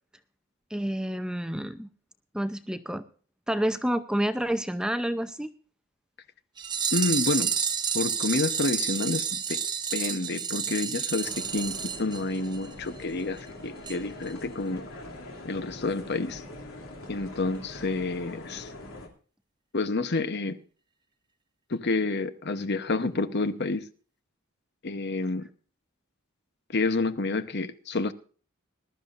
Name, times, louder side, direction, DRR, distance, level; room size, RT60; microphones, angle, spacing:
voice 1, 0.7-1.9 2.3-3.0 3.5-5.5, equal, 5° right, 0.6 m, -29 dB
sound 1, 6.6-12.7 13.0-13.1 13.4-13.5 13.9-14.0 14.3-14.4, right 7 dB, 20° right, 1.0 m, -30 dB
voice 2, 6.9-7.5 7.9-9.6 9.9-14.8 15.4-16.4 17.1-18.7 19.7-20.6 21.7-23.8 24.8-25.5 26.7-28.1, left 3 dB, 50° left, 1.0 m, -29 dB
sound 2, 11.2-19.1, left 1 dB, 80° left, 3.0 m, -43 dB
20.5 x 12.5 x 2.5 m
head